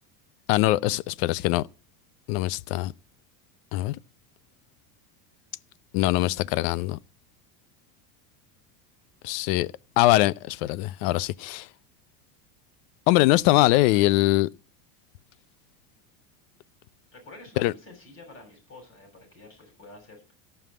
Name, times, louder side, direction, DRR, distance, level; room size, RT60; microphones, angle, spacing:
voice 1, 0.5-1.6 2.3-2.9 3.7-4.0 5.9-7.0 9.2-11.7 13.1-14.5 17.6-17.7, left 17 dB, 70° left, 0.7 m, -22 dB
voice 2, 17.1-20.4, left 2 dB, 25° left, 7.4 m, -48 dB
14.0 x 5.7 x 9.4 m
supercardioid pair, 145°, 46 cm